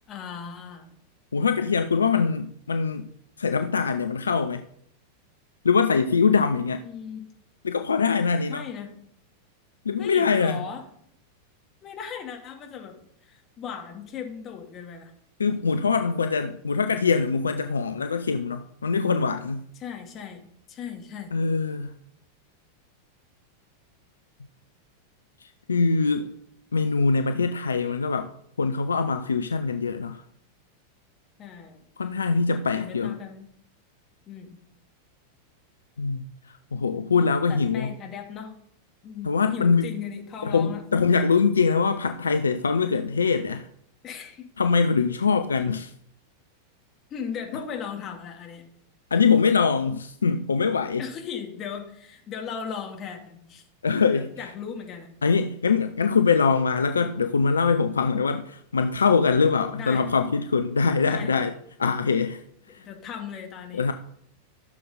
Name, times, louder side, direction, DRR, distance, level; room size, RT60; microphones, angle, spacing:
voice 1, 0.1-0.9 6.8-7.3 8.5-8.9 10.0-10.8 11.8-13.0 13.2-15.1 19.8-20.4 20.7-21.4 31.4-31.8 32.7-33.5 34.3-34.6 37.4-38.5 39.0-40.8 44.0-44.5 47.1-48.6 51.0-53.6 54.1-55.1 59.7-60.1 61.0-61.4 62.7-63.8, left 7 dB, 30° left, 2.4 m, -37 dB
voice 2, 1.3-3.1 3.4-4.7 5.6-6.8 7.6-8.7 9.8-10.6 15.4-19.7 21.3-22.0 25.4-26.3 26.7-28.3 28.6-30.2 32.0-33.2 36.0-37.9 39.2-39.9 40.4-43.7 44.6-45.9 49.1-51.0 53.8-54.5 55.2-61.5 61.8-62.4 62.7-62.9 63.7-63.9, left 5 dB, 70° left, 0.5 m, -23 dB
14.5 x 6.8 x 4.0 m
figure-of-eight pair, 90°, 0 cm